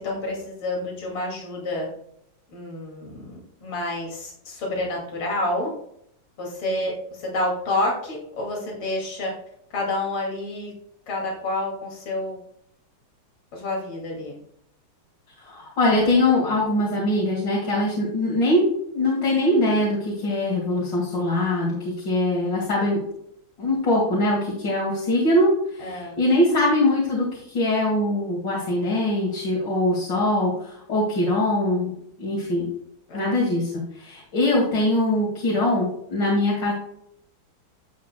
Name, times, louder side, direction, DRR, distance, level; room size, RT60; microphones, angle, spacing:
voice 1, 0.0-1.9 2.5-5.7 6.4-9.3 9.7-10.7 11.1-12.4 13.5-14.3 25.8-26.2 33.1-33.3, left 1 dB, 85° left, -1 dB, 3.2 m, -29 dB
voice 2, 15.4-23.0 23.6-31.9 32.2-32.7 33.1-36.7, left 1 dB, 65° left, -4 dB, 2.9 m, -22 dB
11.0 x 8.5 x 2.2 m, 0.71 s
omnidirectional pair, 2.2 m